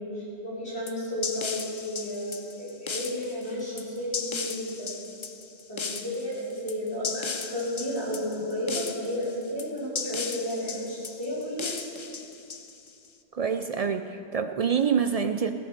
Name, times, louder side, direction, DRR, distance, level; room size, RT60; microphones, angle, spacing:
voice 1, 0.1-4.9 5.7-11.9, left 1 dB, 65° left, -9 dB, 4.8 m, -32 dB
sound 1, 0.9-13.1, left 5 dB, 40° left, 0.4 m, -36 dB
voice 2, 13.3-15.5, right 7 dB, 65° right, 8 dB, 0.3 m, -26 dB
16.0 x 9.3 x 6.6 m, 2.6 s
omnidirectional pair, 1.2 m